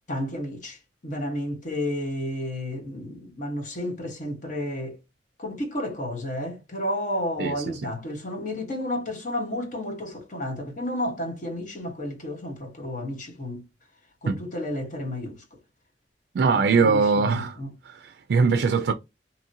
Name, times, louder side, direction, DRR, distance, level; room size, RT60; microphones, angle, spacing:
voice 1, 0.1-0.8 1.0-5.0 5.4-13.6 14.2-15.4 16.4-17.7, left 1 dB, 45° left, 1.1 m, -31 dB
voice 2, 7.4-7.8 14.3-14.4 16.3-17.6 17.8-18.9, right 5 dB, 60° right, 0.3 m, -22 dB
2.8 x 2.7 x 2.5 m
head